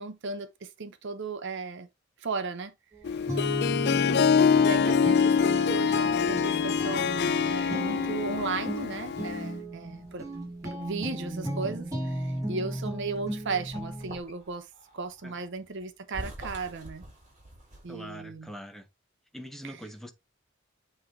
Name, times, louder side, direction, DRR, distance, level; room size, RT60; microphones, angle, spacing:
voice 1, 0.0-1.9 2.2-2.7 3.8-10.3 10.6-14.7 14.9-17.0 17.8-18.5 19.6-19.7, right 4 dB, 60° right, 0.7 m, -36 dB
Guitar, 2.9-14.2, right 1 dB, 15° right, 2.5 m, -35 dB
Harp, 3.0-9.6, left 6 dB, 55° left, 0.3 m, -25 dB
sound 1, 8.0-12.1 12.5-18.2, right 1 dB, 40° right, 3.0 m, -50 dB
voice 2, 17.9-18.9 19.3-20.1, equal, ahead, 1.0 m, -42 dB
8.4 x 3.2 x 3.7 m
head